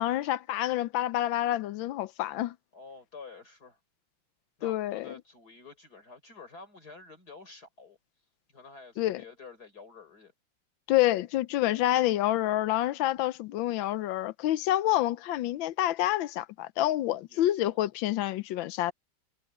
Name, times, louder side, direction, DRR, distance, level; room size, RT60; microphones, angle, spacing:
voice 1, 0.0-2.5 4.6-5.1 9.0-9.2 10.9-18.9, left 14 dB, 80° left, 1.4 m, -28 dB
voice 2, 2.7-3.8 4.6-8.0 8.5-10.3 17.3-17.8, left 4 dB, 50° left, 4.7 m, -49 dB
omnidirectional pair, 2.1 m